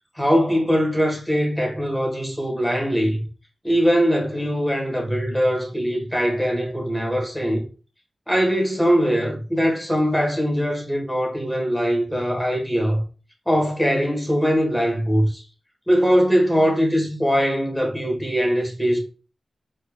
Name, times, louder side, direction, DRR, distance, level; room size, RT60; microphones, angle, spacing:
voice 1, 0.2-3.2 3.6-7.6 8.3-13.0 13.5-15.4 15.9-19.0, equal, 5° left, 1.3 m, -21 dB
4.2 x 3.3 x 2.3 m
wide cardioid pair, 90°, 0 cm